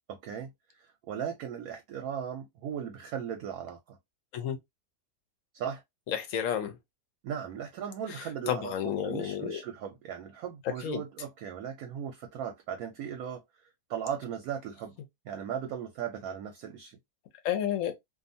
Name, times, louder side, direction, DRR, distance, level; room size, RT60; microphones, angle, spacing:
voice 1, 0.1-0.5 0.8-4.0 5.5-5.8 7.2-13.4 13.9-15.0 15.2-17.0, right 8 dB, 70° right, 0.9 m, -37 dB
voice 2, 6.1-6.8 8.1-9.6 10.8-11.0 17.4-17.9, left 9 dB, 70° left, 0.8 m, -31 dB
2.6 x 2.3 x 2.5 m
omnidirectional pair, 1.8 m